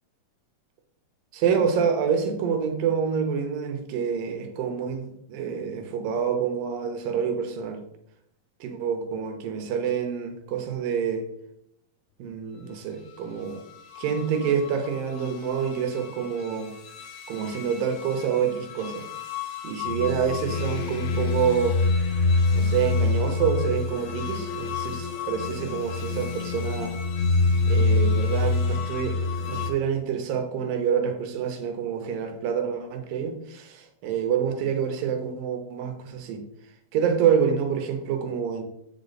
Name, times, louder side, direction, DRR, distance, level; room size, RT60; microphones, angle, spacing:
voice 1, 1.3-7.8 8.6-11.2 12.2-13.6 14.0-16.7 17.3-19.1 19.6-21.8 22.5-27.0 27.7-36.4 36.9-38.6, right 7 dB, 85° right, 6 dB, 2.7 m, -27 dB
sound 1, 13.5-29.7, left 3 dB, 65° left, 1.8 m, -27 dB
8.5 x 5.2 x 4.1 m, 0.76 s
omnidirectional pair, 3.9 m